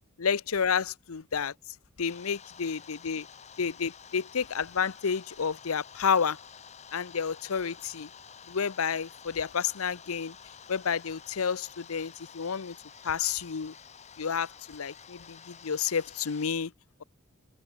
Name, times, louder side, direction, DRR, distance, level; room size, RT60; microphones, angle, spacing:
voice 1, 0.2-1.5 2.0-3.3 3.6-6.4 6.9-8.1 8.5-10.3 10.7-12.8 13.0-13.7 14.2-16.7, left 6 dB, 85° left, 0.7 m, -30 dB
sound 1, 2.1-16.5, left 7 dB, 35° left, 1.1 m, -50 dB
head